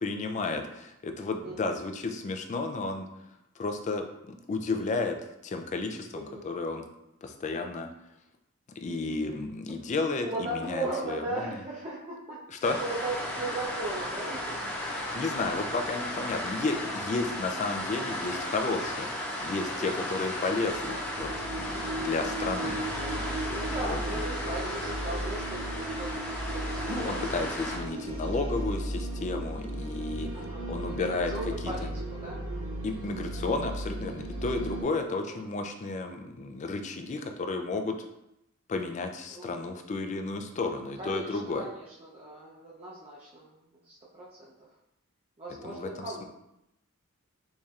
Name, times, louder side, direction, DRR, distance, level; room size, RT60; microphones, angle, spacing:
voice 1, 0.0-3.1 3.6-5.2 5.4-6.8 7.2-7.9 8.8-11.6 12.6-12.8 15.1-19.1 19.4-21.3 21.6-22.8 23.1-23.3 23.9-24.2 26.9-30.3 30.7-31.3 31.6-31.7 32.8-38.0 38.7-41.7 45.6-46.3, left 3 dB, 30° left, 6 dB, 0.3 m, -32 dB
voice 2, 1.4-1.8 6.1-6.4 10.2-14.6 19.8-20.1 21.7-22.2 23.5-27.4 27.8-28.1 30.3-32.5 35.1-35.4 39.3-39.5 41.0-43.6 43.9-44.5 45.4-46.3, right 2 dB, 25° right, -7 dB, 0.6 m, -38 dB
sound 1, 12.6-27.8, left 1 dB, 10° left, 0.8 m, -35 dB
sound 2, 20.6-34.8, right 1 dB, 55° right, 1.1 m, -36 dB
4.1 x 3.2 x 2.4 m, 0.85 s
head